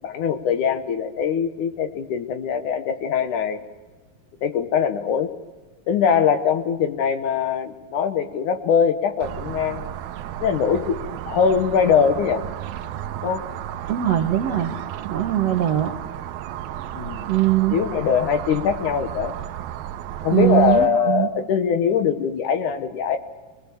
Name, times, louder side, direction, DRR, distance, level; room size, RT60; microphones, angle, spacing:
voice 1, 0.0-3.6 4.4-5.3 5.9-9.9 10.4-11.0 11.3-12.4 13.2-13.4 16.9-17.3 17.7-19.3 20.2-23.2, left 7 dB, 65° left, 8 dB, 2.4 m, -22 dB
sound 1, 9.2-20.9, right 11 dB, 80° right, 2.7 m, -33 dB
voice 2, 13.9-14.7 15.0-15.9 17.3-17.8 20.3-21.3, right 12 dB, 65° right, 5 dB, 1.6 m, -21 dB
23.0 x 21.0 x 7.1 m, 1.3 s
omnidirectional pair, 4.1 m